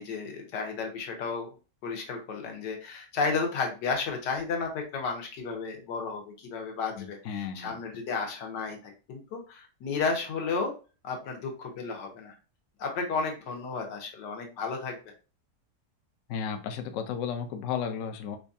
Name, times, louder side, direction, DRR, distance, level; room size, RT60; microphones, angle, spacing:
voice 1, 0.0-1.5 1.8-10.7 11.0-12.3 12.8-15.0, left 4 dB, 90° left, 2 dB, 1.5 m, -33 dB
voice 2, 7.0-7.8 16.3-18.4, left 7 dB, 70° left, 5 dB, 0.8 m, -34 dB
4.4 x 2.3 x 2.6 m, 0.34 s
omnidirectional pair, 1.8 m